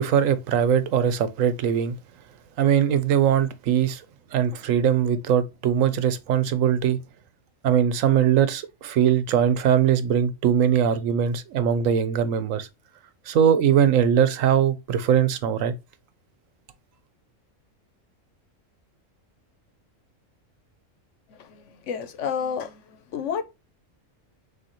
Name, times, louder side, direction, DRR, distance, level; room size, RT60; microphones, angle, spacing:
voice 1, 0.0-1.9 2.6-4.0 4.3-7.0 7.6-12.7 13.3-15.7, right 8 dB, 85° right, 1.1 m, -21 dB
voice 2, 21.3-23.4, left 7 dB, 70° left, 1.1 m, -31 dB
6.4 x 2.7 x 2.9 m
omnidirectional pair, 1.3 m